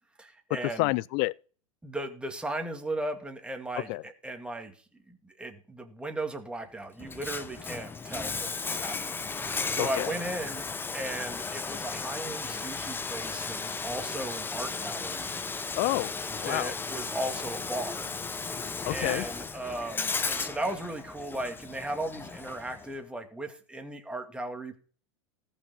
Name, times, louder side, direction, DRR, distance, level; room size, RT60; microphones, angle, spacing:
voice 1, 0.2-0.9 1.8-4.7 5.1-10.6 10.9-15.4 16.4-18.1 18.9-24.8, right 1 dB, 5° right, 2.3 m, -36 dB
voice 2, 0.8-1.3 3.9-4.0 9.8-10.1 15.8-16.7 18.8-19.3, left 21 dB, 45° left, 0.5 m, -29 dB
Bathtub (filling or washing), 7.0-22.9, left 4 dB, 15° left, 0.8 m, -35 dB
18.5 x 6.3 x 4.3 m
hypercardioid pair, 100°, 16 cm